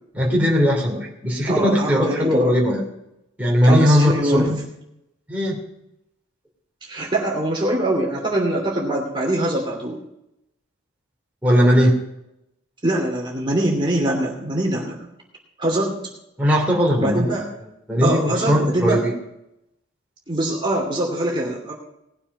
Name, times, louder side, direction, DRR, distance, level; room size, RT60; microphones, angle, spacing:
voice 1, 0.1-2.8 3.4-4.6 5.3-5.6 11.4-12.0 16.4-17.3 17.9-19.1, equal, 5° right, -3 dB, 2.7 m, -18 dB
voice 2, 1.5-2.6 3.6-4.5 6.9-10.0 12.8-15.0 15.6-16.0 17.0-17.5 18.0-19.0 20.3-21.7, right 1 dB, 25° right, -1 dB, 2.6 m, -23 dB
18.5 x 7.1 x 5.3 m, 0.83 s
head